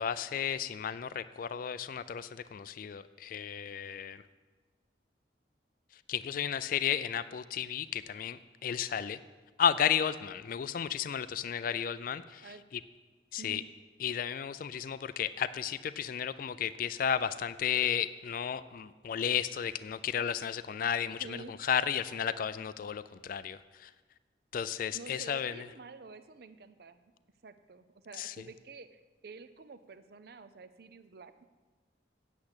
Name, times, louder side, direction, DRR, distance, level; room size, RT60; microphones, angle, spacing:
voice 1, 0.0-4.2 6.1-9.2 9.6-12.5 13.3-13.6 14.0-23.9 24.5-25.6 28.2-28.3, left 8 dB, 50° left, 14 dB, 0.3 m, -33 dB
voice 2, 21.2-21.6 24.9-27.0 27.4-31.4, right 4 dB, 60° right, 12 dB, 0.5 m, -49 dB
8.5 x 7.2 x 8.0 m, 1.3 s
head